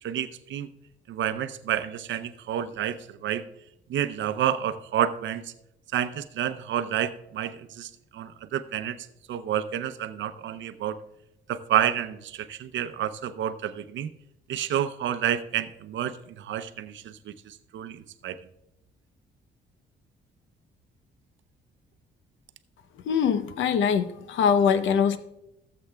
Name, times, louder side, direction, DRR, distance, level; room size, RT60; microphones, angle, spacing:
voice 1, 0.0-0.7 1.1-3.4 3.9-5.5 5.9-9.0 9.3-11.0 11.5-14.1 14.5-18.4, right 10 dB, 70° right, 12 dB, 0.7 m, -29 dB
voice 2, 23.1-25.2, left 7 dB, 75° left, 12 dB, 0.8 m, -23 dB
16.0 x 7.8 x 2.3 m, 0.82 s
cardioid pair, 90°, 20 cm